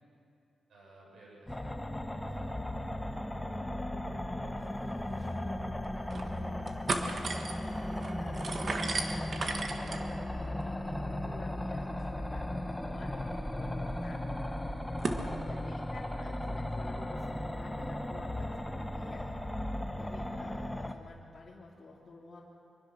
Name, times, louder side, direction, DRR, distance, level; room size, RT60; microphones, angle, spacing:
voice 1, 0.7-5.5 5.9-8.2 12.2-12.6 15.0-15.6 16.0-16.4 19.6-20.6, right 1 dB, 70° right, -2 dB, 7.2 m, -58 dB
sound 1, 1.5-20.9, left 1 dB, 10° left, 1.1 m, -36 dB
sound 2, 4.9-5.0 5.2-5.3 5.8-6.3 6.6-15.2, right 3 dB, 50° right, 1.7 m, -39 dB
voice 2, 8.2-8.7 9.4-12.4 12.9-14.2 15.4-19.5 19.9-22.4, left 3 dB, 30° left, -5 dB, 2.7 m, -51 dB
24.5 x 23.5 x 6.2 m, 2.7 s
wide cardioid pair, 120°, 0 cm